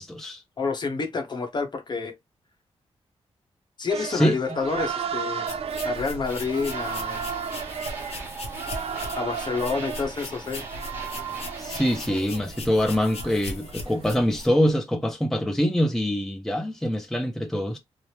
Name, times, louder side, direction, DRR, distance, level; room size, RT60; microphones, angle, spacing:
voice 1, 0.0-0.4 4.0-4.4 11.6-17.8, equal, 5° left, 0.5 m, -24 dB
voice 2, 0.6-2.1 3.8-5.5 5.8-7.2 9.1-10.6, left 4 dB, 45° left, 0.8 m, -28 dB
sound 1, 3.9-14.7, right 7 dB, 65° right, 0.5 m, -35 dB
sound 2, 5.5-14.5, left 2 dB, 70° left, 0.9 m, -39 dB
sound 3, 6.2-12.2, right 3 dB, 20° right, 1.1 m, -41 dB
3.2 x 2.0 x 2.8 m
wide cardioid pair, 115°, 11 cm